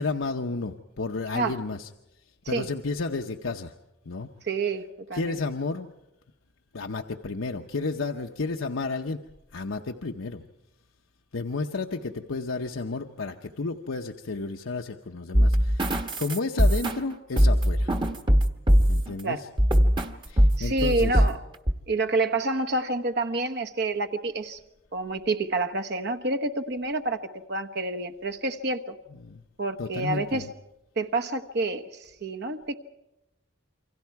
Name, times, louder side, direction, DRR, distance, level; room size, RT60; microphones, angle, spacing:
voice 1, 0.0-1.9 2.5-3.7 4.1-4.3 5.1-5.9 6.7-9.2 9.5-10.4 11.3-17.9 18.9-19.5 20.3-21.2 29.2-29.4 29.8-30.5, left 3 dB, 75° left, 3 dB, 0.8 m, -32 dB
voice 2, 4.4-5.4 19.2-19.4 20.6-21.4 21.9-24.6 24.9-28.9 29.6-30.5 31.0-32.7, right 2 dB, 55° right, 10 dB, 1.2 m, -28 dB
sound 1, 15.3-19.1 19.6-20.1 20.4-21.3 21.7-21.8, equal, 25° right, 1.2 m, -21 dB
28.0 x 24.5 x 4.7 m, 0.90 s
head